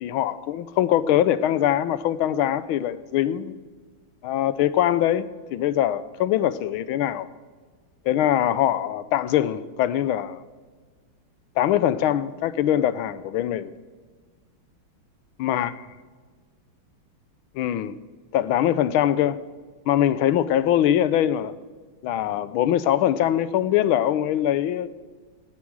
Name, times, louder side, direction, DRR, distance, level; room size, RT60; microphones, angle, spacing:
voice 1, 0.0-3.6 4.2-7.3 8.0-10.4 11.6-13.7 15.4-15.7 17.5-18.0 18.3-19.4 19.9-21.5 22.0-24.9, left 11 dB, 85° left, 15 dB, 1.5 m, -22 dB
16.0 x 9.8 x 4.7 m, 1.5 s
omnidirectional pair, 2.2 m